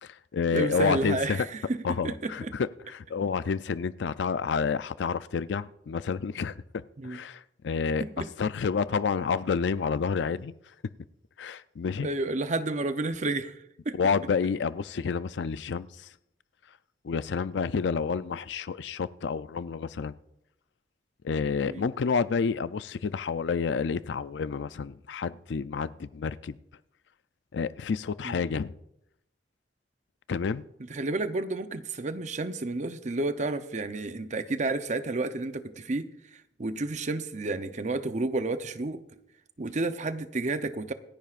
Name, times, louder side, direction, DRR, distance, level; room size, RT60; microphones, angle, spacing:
voice 1, 0.0-1.5 1.8-8.0 8.4-10.5 11.4-12.1 14.0-16.1 17.0-20.1 21.2-26.6 27.5-28.7 30.3-30.6, left 5 dB, 75° left, 0.4 m, -29 dB
voice 2, 0.5-1.8 2.0-2.5 7.0-7.2 8.0-8.3 12.0-14.0 21.7-21.9 28.2-28.4 30.9-39.0 39.6-40.9, right 2 dB, 40° right, 0.7 m, -31 dB
26.5 x 10.0 x 2.5 m
head